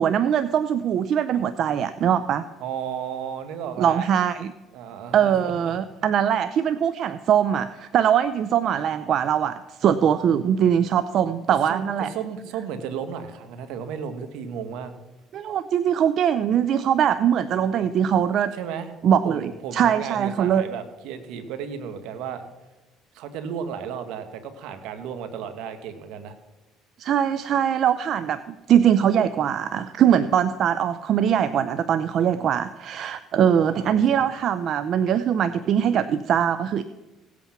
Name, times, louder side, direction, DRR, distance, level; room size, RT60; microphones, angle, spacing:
voice 1, 0.0-2.4 3.8-4.5 5.1-12.1 15.3-18.5 19.0-20.6 27.0-36.8, right 9 dB, 60° right, 13 dB, 0.5 m, -22 dB
voice 2, 2.6-4.1 4.7-5.7 11.7-14.9 18.5-18.9 19.2-22.4 23.1-26.3 33.7-34.3, right 7 dB, 75° right, 9 dB, 1.5 m, -34 dB
17.5 x 8.4 x 5.9 m, 1.1 s
supercardioid pair, 80°, 0 cm